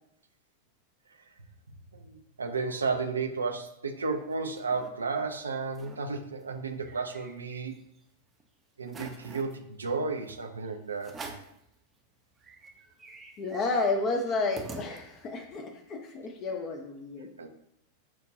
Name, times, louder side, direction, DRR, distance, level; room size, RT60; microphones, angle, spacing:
voice 1, 1.9-7.8 8.8-11.2 17.4-17.5, right 4 dB, 75° right, 6 dB, 0.4 m, -33 dB
sound 1, 4.3-4.9 5.3-5.4 5.7-6.0 6.4-8.0 8.4-8.5 8.9-9.6 10.3-10.4 11.0-11.6 12.1-12.2 12.4-15.4, right 3 dB, 20° right, 0.5 m, -46 dB
voice 2, 13.4-17.3, left 3 dB, 35° left, 5 dB, 0.4 m, -31 dB
5.8 x 2.2 x 2.6 m, 0.76 s
figure-of-eight pair, 90°, 0 cm